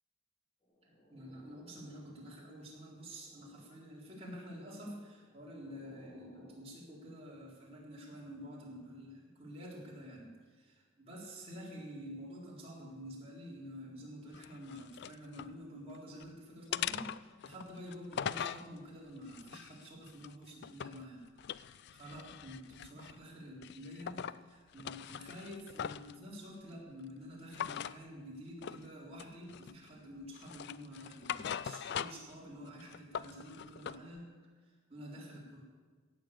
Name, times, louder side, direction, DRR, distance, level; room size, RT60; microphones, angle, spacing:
sound 1, 0.6-2.4 2.8-4.0 4.9-6.7, left 1 dB, 20° left, 2.7 m, -62 dB
voice 1, 0.8-21.2 21.7-34.3 34.6-35.6, equal, 30° right, -5 dB, 3.9 m, -49 dB
sound 2, 14.3-15.5 15.9-16.3 16.7-18.7 19.2-21.0 21.4-23.2 23.6-24.4 24.7-26.1 27.5-28.0 28.6-28.9 29.2-29.9 30.3-32.3 32.7-34.0, left 9 dB, 55° left, 0.3 m, -41 dB
16.5 x 6.9 x 8.4 m, 1.4 s
head